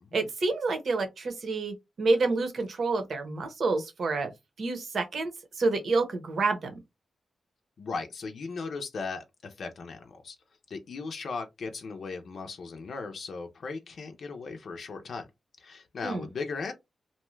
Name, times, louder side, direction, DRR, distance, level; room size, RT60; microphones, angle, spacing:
voice 1, 0.1-4.3 4.6-6.7 16.0-16.3, right 3 dB, 65° right, 0.9 m, -28 dB
voice 2, 7.8-10.4 10.7-15.3 15.6-16.7, left 4 dB, 70° left, 0.5 m, -37 dB
2.6 x 2.2 x 3.1 m
cardioid pair, 80°, 0 cm